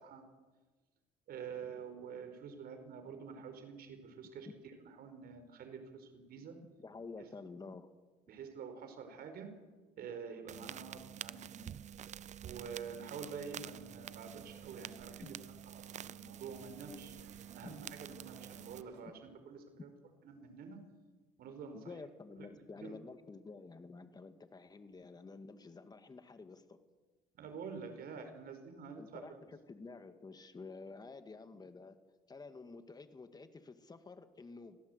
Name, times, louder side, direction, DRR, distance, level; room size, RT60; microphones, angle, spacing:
voice 1, 1.3-4.5 5.0-6.6 8.3-9.5 10.0-11.7 12.4-15.3 15.7-17.1 17.5-19.1 19.5-19.9 20.2-20.8 21.4-21.9 22.4-22.5 22.8-22.9 27.3-29.2, right 6 dB, 65° right, 7 dB, 5.0 m, -47 dB
voice 2, 6.8-7.9 15.2-15.3 17.6-17.8 21.7-26.8 29.0-32.0 32.3-34.8, left 4 dB, 25° left, 9 dB, 2.0 m, -50 dB
sound 1, 10.5-18.8, right 10 dB, 45° right, 0.7 m, -48 dB
sound 2, 13.2-19.0, right 6 dB, 80° right, 4.6 m, -61 dB
25.0 x 17.0 x 8.2 m, 1.3 s
cardioid pair, 110°, 17 cm